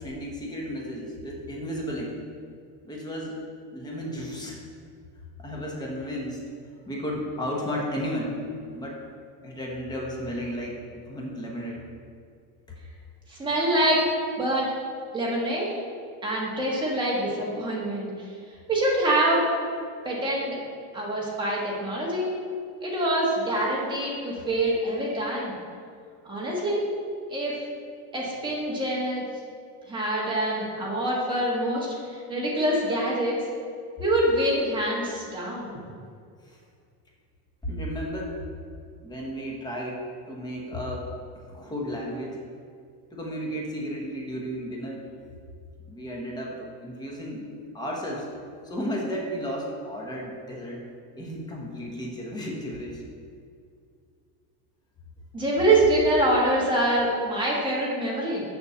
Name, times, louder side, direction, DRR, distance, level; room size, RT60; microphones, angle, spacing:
voice 1, 0.0-2.2 2.8-3.4 3.7-4.6 5.4-6.4 6.9-8.4 8.7-9.0 9.4-11.8 36.4-36.6 37.6-38.5 39.0-41.1 41.5-42.4 43.1-45.1 45.8-47.4 47.7-48.3 48.6-50.8 51.2-53.0 55.4-55.5, equal, 10° left, -3 dB, 1.0 m, -33 dB
voice 2, 13.3-14.0 14.4-14.7 15.1-15.7 16.2-18.1 18.7-19.4 20.0-20.6 20.9-22.3 22.8-25.5 26.3-26.8 27.3-27.5 28.1-29.2 29.9-33.4 34.0-35.7 55.3-58.4, right 1 dB, 10° right, -5 dB, 1.5 m, -25 dB
7.1 x 5.9 x 6.9 m, 2.3 s
cardioid pair, 180°, 47 cm